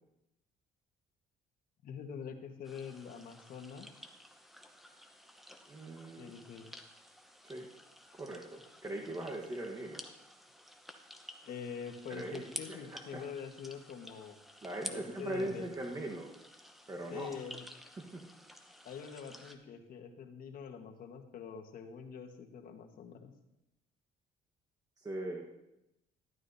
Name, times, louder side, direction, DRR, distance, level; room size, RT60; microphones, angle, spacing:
voice 1, 1.8-3.9 6.2-6.7 11.4-14.4 14.9-15.7 17.1-17.6 18.8-23.3, left 7 dB, 60° left, 4 dB, 1.4 m, -45 dB
sound 1, 2.6-19.6, equal, ahead, 0.9 m, -52 dB
voice 2, 5.7-6.3 7.4-7.7 8.2-10.0 12.1-13.2 14.6-16.3 16.9-17.3 18.0-18.2 25.0-25.5, right 1 dB, 20° right, 0 dB, 1.3 m, -40 dB
12.5 x 11.5 x 2.7 m, 0.88 s
cardioid pair, 110°, 17 cm